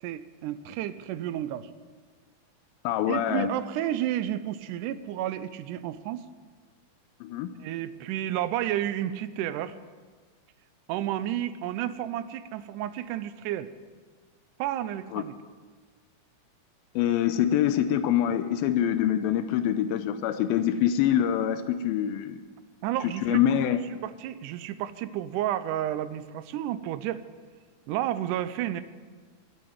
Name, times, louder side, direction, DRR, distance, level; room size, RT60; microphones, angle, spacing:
voice 1, 0.0-1.7 3.1-6.3 7.6-9.8 10.9-13.7 14.6-15.3 22.8-23.4 23.9-27.3 27.9-28.8, right 12 dB, 80° right, 13 dB, 1.9 m, -31 dB
voice 2, 2.8-3.5 7.2-7.6 15.1-15.2 17.0-22.4 23.0-23.8, left 10 dB, 85° left, 10 dB, 2.4 m, -25 dB
12.0 x 8.8 x 9.4 m, 1.5 s
omnidirectional pair, 4.2 m